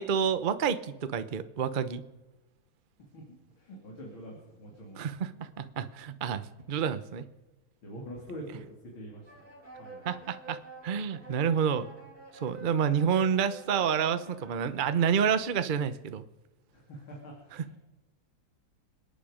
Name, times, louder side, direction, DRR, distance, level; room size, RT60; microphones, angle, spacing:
voice 1, 0.0-2.0 5.0-7.2 10.0-10.6 10.8-11.8 12.4-16.2, right 7 dB, 65° right, 11 dB, 0.5 m, -29 dB
voice 2, 3.6-5.0 7.8-9.3 9.7-10.1 16.7-17.8, equal, 80° left, -2 dB, 3.7 m, -45 dB
sound 1, 9.3-15.4, right 3 dB, 50° right, 5.1 m, -49 dB
27.5 x 9.3 x 5.1 m, 1.0 s
omnidirectional pair, 2.2 m